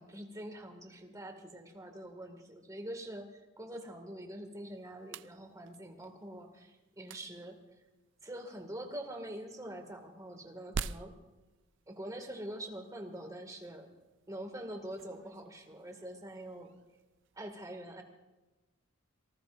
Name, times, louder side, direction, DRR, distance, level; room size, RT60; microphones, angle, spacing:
voice 1, 0.0-7.6 8.2-11.1 11.9-13.9 14.3-16.7 17.4-18.0, right 1 dB, 15° right, 4 dB, 2.1 m, -45 dB
sound 1, 4.6-17.5, right 5 dB, 60° right, 0.4 m, -49 dB
27.0 x 19.0 x 2.6 m, 1.1 s
head